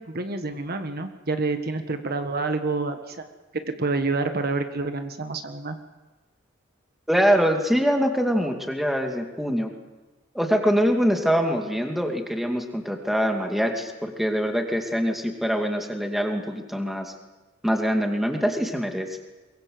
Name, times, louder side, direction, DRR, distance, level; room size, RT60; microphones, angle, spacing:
voice 1, 0.0-3.2 3.8-5.8, right 3 dB, 50° right, 7 dB, 1.5 m, -28 dB
voice 2, 7.1-9.7 10.3-17.1 17.6-19.1, equal, ahead, 3 dB, 2.5 m, -24 dB
23.5 x 22.5 x 7.9 m, 1.2 s
head